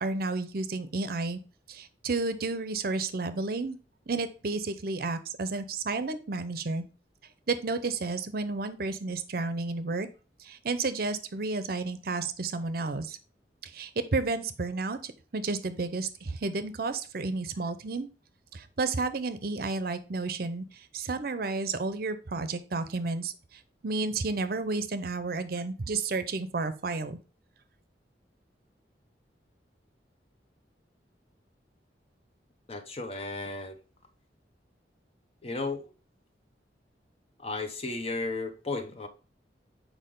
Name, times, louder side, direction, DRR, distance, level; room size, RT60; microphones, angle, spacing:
voice 1, 0.0-1.4 1.7-3.8 4.1-6.8 7.5-10.1 10.4-13.2 13.6-18.1 18.5-23.3 23.8-27.2, right 3 dB, 55° right, 0.6 m, -31 dB
voice 2, 32.7-33.8 35.4-35.9 37.4-39.1, left 3 dB, 35° left, 0.9 m, -34 dB
6.6 x 4.8 x 3.7 m
head